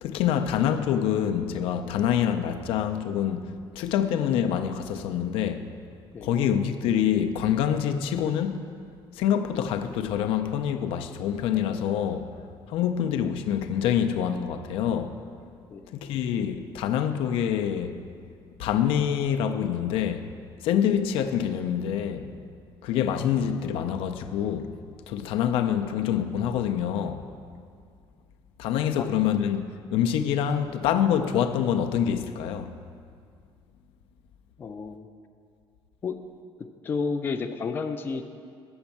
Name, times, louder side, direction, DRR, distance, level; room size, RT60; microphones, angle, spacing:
voice 1, 0.0-5.7 6.2-8.6 9.1-12.3 12.7-15.2 15.9-18.0 18.6-20.3 20.6-22.3 22.8-24.8 25.1-27.2 28.6-32.7, left 9 dB, 85° left, 0.5 m, -26 dB
voice 2, 34.6-35.1 36.0-36.2 36.8-38.2, left 5 dB, 25° left, 0.3 m, -30 dB
7.8 x 5.3 x 7.1 m
cardioid pair, 165°, 9 cm